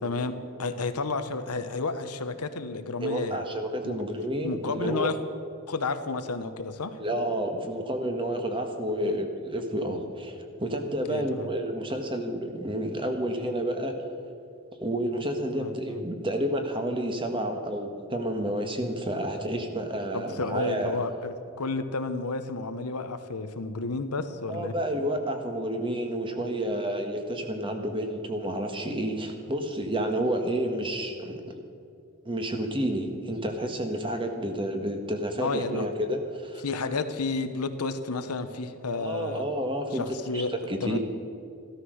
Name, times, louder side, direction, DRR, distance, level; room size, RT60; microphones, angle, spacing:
voice 1, 0.0-3.4 3.8-4.0 4.4-5.2 5.7-7.0 9.0-9.2 11.1-11.5 15.5-16.0 20.1-24.7 35.4-35.9 36.6-39.4 39.9-40.5 40.8-41.0, left 3 dB, 85° left, 9 dB, 1.0 m, -31 dB
voice 2, 3.0-5.1 7.0-13.9 14.8-21.0 24.5-31.4 32.2-36.6 38.9-41.0, right 1 dB, 25° right, 5 dB, 1.4 m, -30 dB
14.5 x 13.0 x 6.5 m, 2.5 s
head